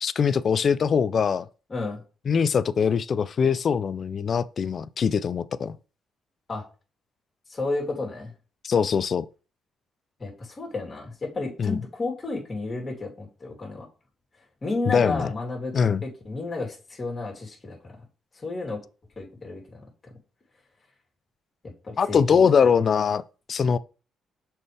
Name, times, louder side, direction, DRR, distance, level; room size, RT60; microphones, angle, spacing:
voice 1, 0.0-1.5 2.3-5.8 8.6-9.3 11.6-11.8 14.9-15.3 15.7-16.0 22.0-23.2 23.5-23.8, left 6 dB, 50° left, 0.4 m, -22 dB
voice 2, 1.7-2.0 6.5-6.6 7.5-8.3 10.2-13.9 14.6-18.0 18.4-18.8 19.2-19.8 21.8-22.4, left 3 dB, 35° left, 3.0 m, -32 dB
6.7 x 4.4 x 3.4 m
cardioid pair, 90°, 0 cm